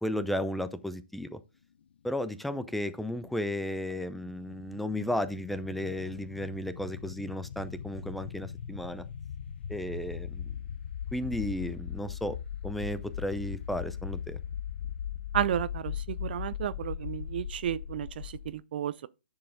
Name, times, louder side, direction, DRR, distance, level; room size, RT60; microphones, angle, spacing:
voice 1, 0.0-1.4 2.0-9.0 9.7-10.5 11.1-12.4 12.6-14.4, left 1 dB, ahead, 0.6 m, -34 dB
sound 1, 2.6-18.5, left 9 dB, 65° left, 0.6 m, -39 dB
voice 2, 15.3-19.1, right 11 dB, 55° right, 0.4 m, -32 dB
10.5 x 4.8 x 3.8 m
figure-of-eight pair, 125°, 6 cm